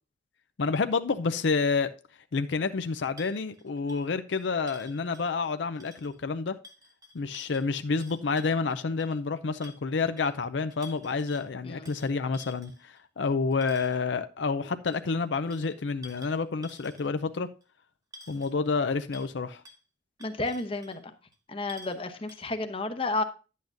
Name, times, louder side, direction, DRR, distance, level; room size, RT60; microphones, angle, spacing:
voice 1, 0.6-1.9 2.3-6.5 7.1-17.5 18.3-19.6, left 4 dB, 80° left, 0.5 m, -29 dB
sound 1, 3.2-5.5 5.7-6.2 6.6-9.2 9.6-10.3 10.7-11.5 11.9-14.1 14.9-17.3 17.6-17.7 18.1-18.8 19.1-19.3 19.6-19.8 20.2-21.0 21.3-21.4 21.7-22.0 22.3-22.5, left 1 dB, 20° right, 1.0 m, -51 dB
voice 2, 20.2-21.0 21.5-23.2, left 2 dB, 30° left, 0.8 m, -31 dB
10.0 x 8.4 x 2.6 m
head